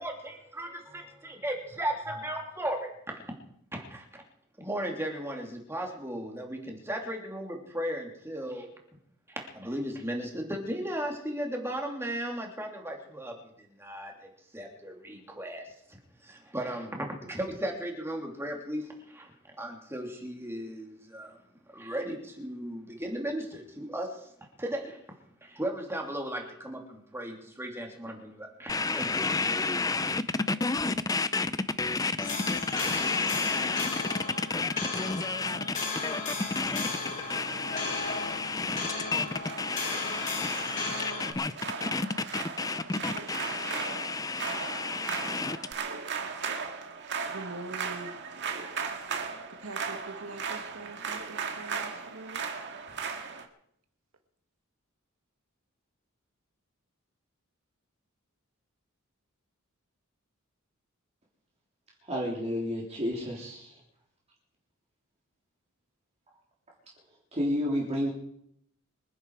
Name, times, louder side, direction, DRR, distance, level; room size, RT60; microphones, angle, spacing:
voice 1, 0.0-3.3 3.7-4.2 4.6-8.7 9.3-14.3 14.5-19.3 19.6-21.4 21.7-24.3 24.6-25.0 25.4-29.3, right 1 dB, 10° right, 1 dB, 3.0 m, -36 dB
sound 1, 28.7-45.7, left 3 dB, 15° left, 0.5 m, -31 dB
sound 2, 32.2-41.3, left 4 dB, 35° left, 3.3 m, -35 dB
sound 3, 36.6-53.4, right 5 dB, 55° right, 1.9 m, -38 dB
voice 2, 47.2-48.2 49.6-52.4, right 2 dB, 85° right, 7 dB, 1.8 m, -43 dB
voice 3, 62.1-63.8 67.3-68.1, equal, 30° right, -3 dB, 3.5 m, -30 dB
25.5 x 10.5 x 4.8 m, 0.69 s
head